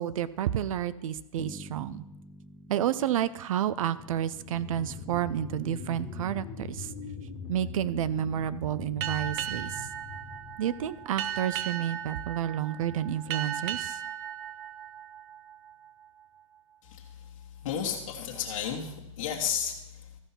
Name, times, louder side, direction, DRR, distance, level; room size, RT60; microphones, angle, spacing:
voice 1, 0.0-2.0 2.7-6.9 7.5-9.9 10.6-14.0, right 10 dB, 75° right, 17 dB, 0.5 m, -30 dB
Bass guitar, 1.4-5.2, equal, 5° right, 0.4 m, -49 dB
sound 1, 3.6-12.6 13.1-13.2, left 4 dB, 15° left, 1.4 m, -42 dB
Boat Water vehicle, 9.0-16.1, right 10 dB, 40° right, 0.7 m, -37 dB
voice 2, 16.8-20.1, left 8 dB, 65° left, -1 dB, 1.6 m, -33 dB
13.5 x 5.4 x 5.7 m, 0.91 s
hypercardioid pair, 150°, 18 cm